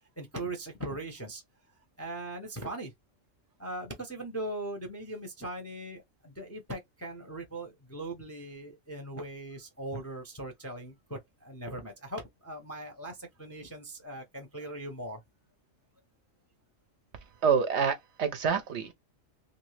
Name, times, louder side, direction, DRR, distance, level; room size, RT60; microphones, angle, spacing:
voice 1, 0.2-1.4 2.0-2.9 3.6-15.2, right 1 dB, 20° left, 0.5 m, -40 dB
voice 2, 17.4-18.9, right 6 dB, 65° right, 0.8 m, -27 dB
2.7 x 2.6 x 3.1 m
omnidirectional pair, 1.4 m